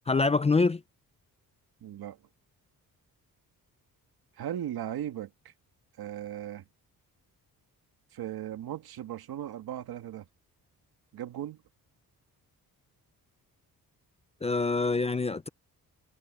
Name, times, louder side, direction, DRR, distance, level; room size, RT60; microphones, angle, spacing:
voice 1, 0.1-0.8 14.4-15.5, left 3 dB, 20° left, 0.4 m, -25 dB
voice 2, 1.8-2.2 4.4-5.5 6.0-6.6 8.1-10.3 11.1-11.6, right 11 dB, 80° right, 2.1 m, -37 dB
wide cardioid pair, 160°, 36 cm